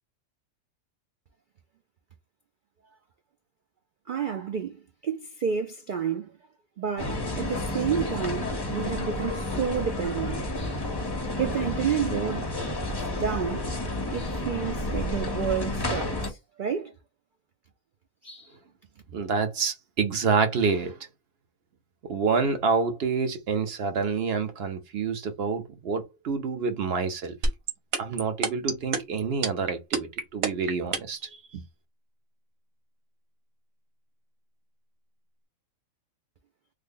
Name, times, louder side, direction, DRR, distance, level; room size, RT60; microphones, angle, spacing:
voice 1, 4.1-6.3 6.8-10.8 11.4-12.5 13.2-13.7 14.1-16.9 18.2-18.5, right 7 dB, 75° right, 0.4 m, -30 dB
sound 1, 7.0-16.3, left 1 dB, 30° left, 0.5 m, -30 dB
voice 2, 19.1-21.0 22.0-27.4 28.0-31.6, right 5 dB, 55° right, 0.8 m, -28 dB
sound 2, 27.4-31.2, right 4 dB, 90° right, 1.3 m, -26 dB
3.3 x 2.2 x 3.6 m
omnidirectional pair, 1.4 m